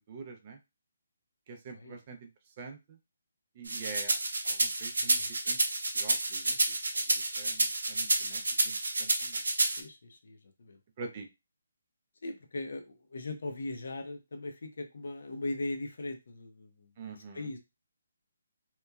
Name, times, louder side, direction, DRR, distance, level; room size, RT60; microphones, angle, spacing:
voice 1, 0.1-0.6 1.5-2.3 2.6-3.0 3.6-4.2 4.4-5.6 5.9-9.4 11.0-11.3 17.0-17.5, right 4 dB, 30° right, 4 dB, 0.4 m, -46 dB
sound 1, 3.7-9.8, right 2 dB, 90° right, 0.6 m, -29 dB
voice 2, 5.0-5.3 9.6-10.8 12.2-17.6, left 2 dB, 65° left, 6 dB, 0.6 m, -39 dB
2.9 x 2.2 x 2.3 m, 0.24 s
hypercardioid pair, 170°, 0 cm